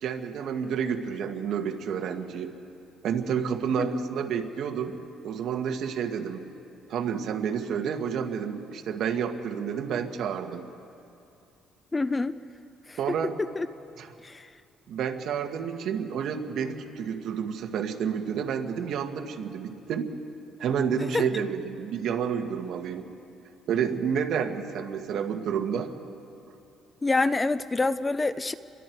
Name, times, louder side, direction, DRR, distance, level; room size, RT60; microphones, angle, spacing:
voice 1, 0.0-2.5 3.0-5.0 5.2-6.5 6.9-10.7 13.0-13.3 14.0-14.1 14.9-20.1 20.6-23.1 23.7-25.9, right 7 dB, 60° right, 5 dB, 1.6 m, -30 dB
voice 2, 11.9-12.4 12.9-13.0 13.4-13.7 14.2-14.5 21.1-21.2 27.0-28.5, left 3 dB, 15° left, 14 dB, 0.4 m, -26 dB
29.0 x 23.0 x 4.7 m, 2.6 s
cardioid pair, 140°, 0 cm